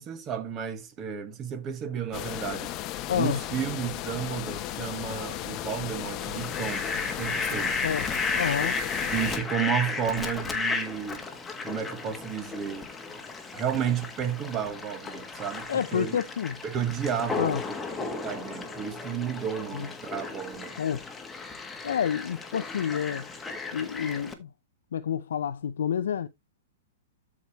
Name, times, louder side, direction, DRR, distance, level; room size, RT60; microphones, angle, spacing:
voice 1, 0.0-2.7 3.2-7.8 9.1-11.2 11.6-12.9 13.5-16.2 16.6-20.7, right 8 dB, 25° right, 1.8 m, -32 dB
sound 1, 2.1-9.4, left 13 dB, 35° left, 0.9 m, -35 dB
voice 2, 3.1-3.4 7.8-8.1 8.4-8.8 15.7-16.6 17.4-17.6 19.7-19.9 20.8-21.0 21.8-23.3 23.7-24.5 24.9-26.3, left 8 dB, 75° left, 0.6 m, -29 dB
Fowl, 6.2-24.3, left 4 dB, 10° left, 1.6 m, -34 dB
12.5 x 5.0 x 3.1 m
hypercardioid pair, 135°, 0 cm